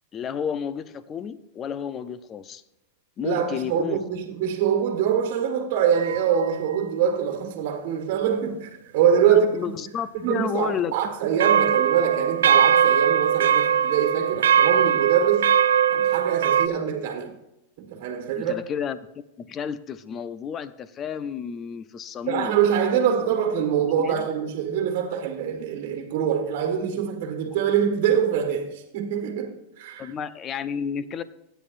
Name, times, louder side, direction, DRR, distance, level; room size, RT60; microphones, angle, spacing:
voice 1, 0.1-2.6 3.2-4.0 9.3-11.0 18.4-22.5 23.0-23.3 23.7-24.3 27.4-27.6 30.0-31.2, left 8 dB, 25° left, 0.6 m, -32 dB
voice 2, 3.2-9.7 10.2-15.5 15.9-17.3 17.8-18.5 22.3-30.1, right 8 dB, 55° right, 1.6 m, -24 dB
sound 1, 5.9-6.5 11.4-16.7, right 8 dB, 85° right, 0.4 m, -20 dB
15.5 x 9.1 x 2.6 m
hypercardioid pair, 130°, 0 cm